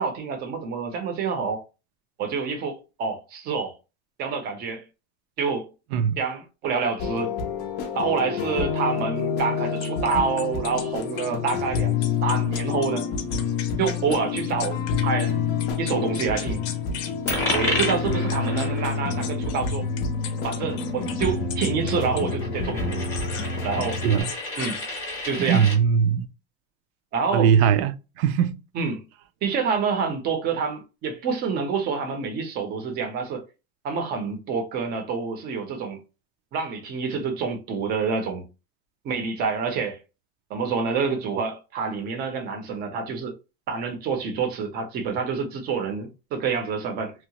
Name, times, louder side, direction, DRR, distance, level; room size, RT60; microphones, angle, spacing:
voice 1, 0.0-1.6 2.2-3.8 4.2-4.8 5.4-5.7 6.2-7.3 7.9-13.1 13.8-15.4 15.8-16.6 17.5-19.9 20.4-23.1 23.6-24.0 24.6-24.8 25.3-25.7 27.1-27.5 28.7-29.0 29.4-33.4 33.8-36.0 36.5-38.5 39.0-40.0 40.5-43.4 43.7-47.1, right 5 dB, 30° right, 0.6 m, -27 dB
sound 1, 7.0-24.2, left 5 dB, 30° left, 0.4 m, -28 dB
sound 2, 9.8-15.3 15.6-17.1 17.5-22.3 22.9-23.5 23.8-25.3, left 9 dB, 90° left, 0.7 m, -38 dB
Coin (dropping), 17.3-25.8, left 1 dB, 10° left, 0.8 m, -32 dB
voice 2, 25.4-26.3 27.3-28.6, right 7 dB, 75° right, 0.5 m, -20 dB
2.8 x 2.1 x 2.8 m
cardioid pair, 170°, 32 cm